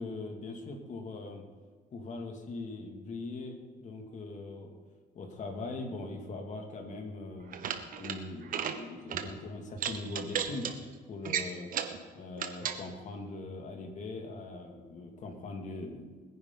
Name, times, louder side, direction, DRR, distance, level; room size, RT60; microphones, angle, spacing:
voice 1, 0.0-1.5 1.9-4.7 5.1-7.6 8.0-10.8 11.1-11.7 12.1-16.0, left 3 dB, 45° left, 3 dB, 2.6 m, -41 dB
sound 1, 7.4-8.2 8.4-8.8 9.1-9.3 9.8-10.7 11.2-12.0 12.4-12.8, right 8 dB, 55° right, 1.3 m, -34 dB
21.0 x 10.5 x 4.1 m, 1.5 s
cardioid pair, 110°, 17 cm